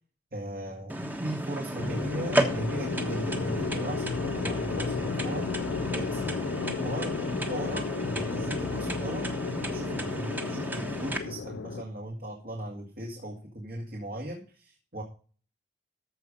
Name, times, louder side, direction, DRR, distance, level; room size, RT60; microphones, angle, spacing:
voice 1, 0.3-5.5 5.9-6.2 6.8-9.2 9.7-15.0, right 1 dB, 55° right, 0 dB, 2.1 m, -38 dB
sound 1, 0.9-11.2, right 1 dB, 10° right, 1.2 m, -33 dB
sound 2, 1.8-11.8, left 5 dB, 85° left, 0.4 m, -33 dB
14.0 x 5.1 x 5.4 m, 0.39 s
head